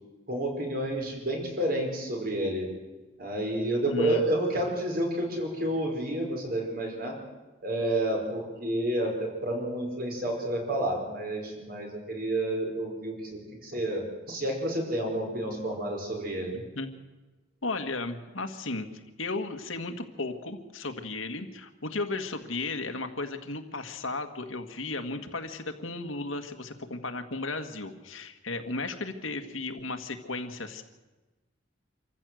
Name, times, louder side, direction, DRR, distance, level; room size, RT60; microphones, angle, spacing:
voice 1, 0.3-2.7 3.2-7.1 7.6-16.5, right 1 dB, 45° right, 1 dB, 5.1 m, -30 dB
voice 2, 3.9-4.2 16.5-16.9 17.6-18.9 19.2-30.8, left 3 dB, 90° left, 7 dB, 1.8 m, -35 dB
26.0 x 14.5 x 7.8 m, 1.2 s
head